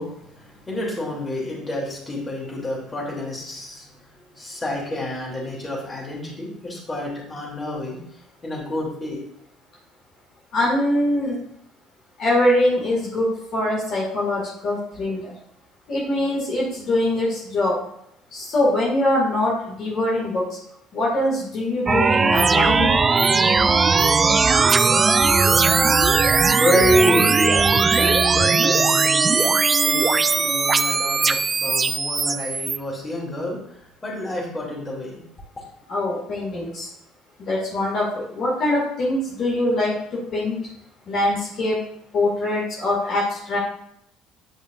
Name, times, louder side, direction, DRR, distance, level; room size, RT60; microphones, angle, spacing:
voice 1, 0.0-3.9 4.4-8.0 8.4-9.2 26.2-35.2, left 1 dB, 20° left, -3 dB, 2.9 m, -28 dB
voice 2, 10.5-11.4 12.2-15.3 15.9-17.8 18.3-20.5 20.9-22.9 35.9-36.9 37.4-40.6 41.1-41.8 42.1-43.6, left 1 dB, 45° left, -5 dB, 2.1 m, -23 dB
sound 1, 21.9-32.8, right 4 dB, 25° right, 0.3 m, -18 dB
9.8 x 5.0 x 2.6 m, 0.73 s
figure-of-eight pair, 55°, 0 cm